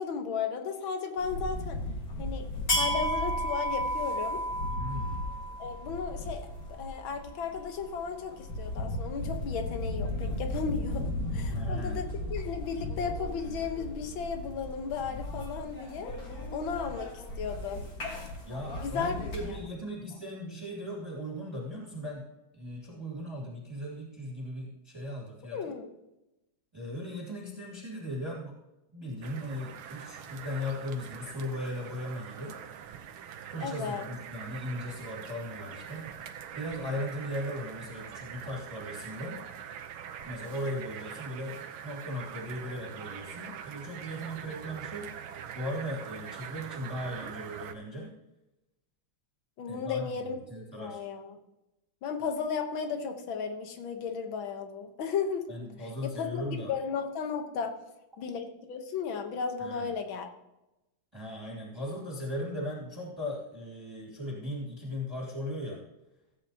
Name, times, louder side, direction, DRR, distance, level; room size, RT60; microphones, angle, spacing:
voice 1, 0.0-1.8 2.2-2.5 2.8-4.4 5.6-6.5 6.8-16.1 16.5-17.1 17.4-17.8 18.8-19.3 19.9-20.0 25.5-25.9 33.6-34.0 49.6-51.4 52.0-55.5 56.0-57.8 58.2-60.3, left 6 dB, 75° left, 5 dB, 1.9 m, -35 dB
sound 1, 1.2-19.6, equal, 45° left, 2.2 m, -34 dB
voice 2, 4.8-5.2 11.4-12.0 18.4-22.2 22.5-25.7 26.7-28.5 28.9-32.5 33.5-36.1 36.5-39.4 40.2-45.1 45.5-48.1 49.7-51.0 55.5-56.7 59.6-59.9 61.1-65.8, equal, 15° right, -3 dB, 2.2 m, -38 dB
sound 2, 29.2-47.7, right 8 dB, 85° right, 1.6 m, -44 dB
16.0 x 8.6 x 2.9 m, 0.94 s
omnidirectional pair, 2.2 m